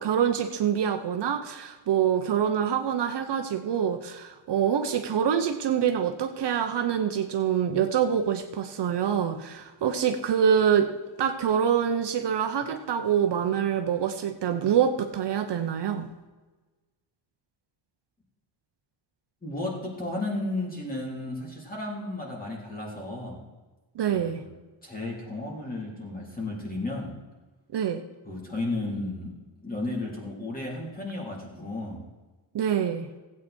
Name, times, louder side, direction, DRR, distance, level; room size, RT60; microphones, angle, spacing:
voice 1, 0.0-10.9 11.2-16.1 23.9-24.4 27.7-28.0 32.5-33.1, right 8 dB, 55° right, 5 dB, 1.0 m, -25 dB
voice 2, 19.4-23.4 24.1-24.5 24.8-27.1 28.2-29.3 29.6-32.0, left 2 dB, 15° left, -3 dB, 3.8 m, -33 dB
16.0 x 8.6 x 4.5 m, 1.2 s
cardioid pair, 135°, 50 cm